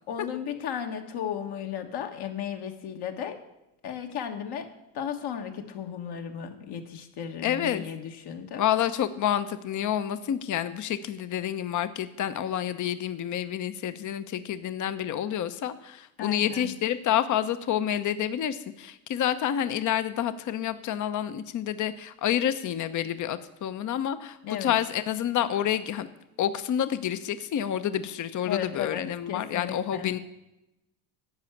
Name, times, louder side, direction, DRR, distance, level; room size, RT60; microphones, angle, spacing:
voice 1, 0.1-3.4 3.8-8.6 16.2-16.7 24.4-24.8 28.4-30.1, left 8 dB, 60° left, 4 dB, 1.5 m, -35 dB
voice 2, 7.4-7.8 8.6-26.1 26.4-30.2, left 10 dB, 40° left, 12 dB, 0.8 m, -28 dB
10.5 x 5.7 x 8.4 m, 0.92 s
supercardioid pair, 95°, 45 cm